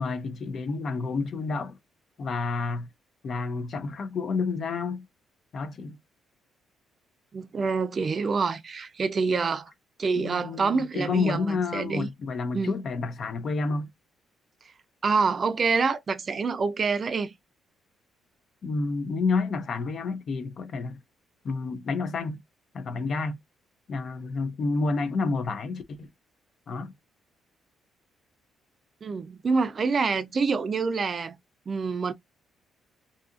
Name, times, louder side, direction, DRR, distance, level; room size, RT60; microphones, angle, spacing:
voice 1, 0.0-1.8 2.2-2.9 3.2-5.1 5.5-6.0 10.2-13.9 18.6-21.0 21.4-22.4 22.7-23.4 23.9-26.1 26.7-26.9, left 4 dB, 55° left, 0.5 m, -29 dB
voice 2, 7.3-9.7 10.0-12.1 12.5-12.8 15.0-17.3 29.0-31.4 31.7-32.1, right 4 dB, 40° right, 0.4 m, -26 dB
2.7 x 2.4 x 2.4 m
cardioid pair, 90°, 0 cm